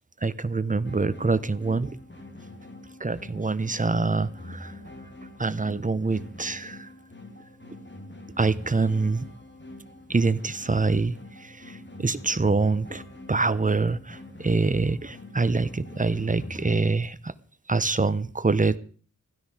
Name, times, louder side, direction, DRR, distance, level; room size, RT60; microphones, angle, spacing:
voice 1, 0.2-1.9 3.0-4.8 5.4-6.9 8.4-9.3 10.1-13.0 13.3-17.3 17.7-18.8, right 3 dB, 25° right, 15 dB, 0.9 m, -25 dB
sound 1, 0.8-16.8, left 1 dB, 35° left, 2.4 m, -44 dB
16.0 x 12.5 x 4.9 m, 0.43 s
wide cardioid pair, 90°, 32 cm